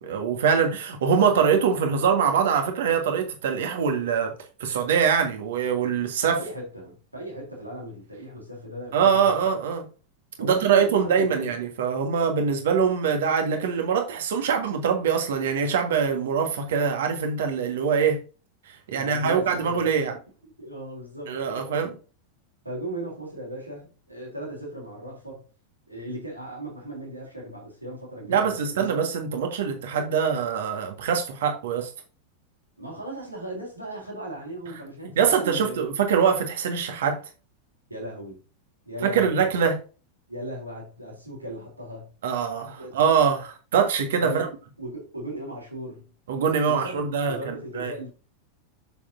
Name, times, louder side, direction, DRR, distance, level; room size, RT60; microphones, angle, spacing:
voice 1, 0.0-4.3 4.6-6.4 8.9-9.9 10.4-18.2 18.7-20.1 21.3-21.9 28.3-31.9 35.2-37.2 39.0-39.8 42.2-44.5 46.3-47.9, right 6 dB, 60° right, 1.8 m, -23 dB
voice 2, 6.3-9.3 10.4-11.5 18.9-19.8 20.6-21.9 22.6-25.4 25.9-28.9 32.8-36.0 37.9-38.4 38.9-39.5 40.3-42.1 42.8-43.1 44.2-44.5 44.8-46.1 46.7-48.1, right 1 dB, 85° right, 3.4 m, -37 dB
7.1 x 7.0 x 2.7 m
figure-of-eight pair, 90°, 0 cm